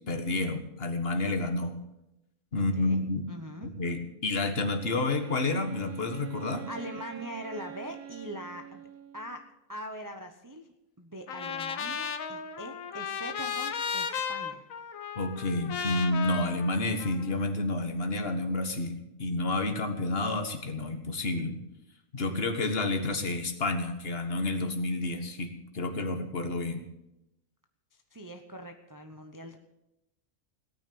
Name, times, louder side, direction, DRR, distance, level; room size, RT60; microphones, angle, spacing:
voice 1, 0.1-1.8 2.5-3.3 3.6-6.7 15.2-21.6 22.1-26.9, left 2 dB, 45° left, 6 dB, 1.8 m, -30 dB
voice 2, 2.6-3.0 3.3-3.7 6.7-8.9 9.1-10.7 11.0-14.6 27.9-29.6, equal, 15° right, 3 dB, 0.8 m, -42 dB
Wind instrument woodwind instrument, 4.7-9.5, right 10 dB, 85° right, 1.2 m, -45 dB
Trumpet, 11.3-17.5, left 6 dB, 70° left, 1.4 m, -35 dB
17.0 x 9.3 x 7.0 m, 0.89 s
omnidirectional pair, 1.5 m